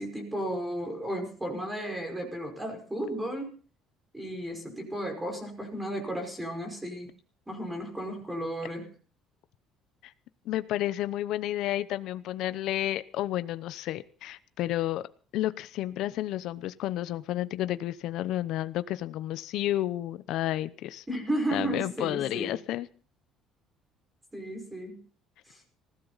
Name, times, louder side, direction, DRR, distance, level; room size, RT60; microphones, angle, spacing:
voice 1, 0.0-3.5 4.1-7.1 7.5-8.9 21.1-22.5 24.3-25.0 25.5-25.6, right 1 dB, 10° right, 3 dB, 5.3 m, -34 dB
voice 2, 10.5-15.0 15.3-21.0 21.5-22.9, left 14 dB, 65° left, 13 dB, 0.8 m, -31 dB
20.0 x 16.0 x 4.1 m, 0.42 s
cardioid pair, 145°, 0 cm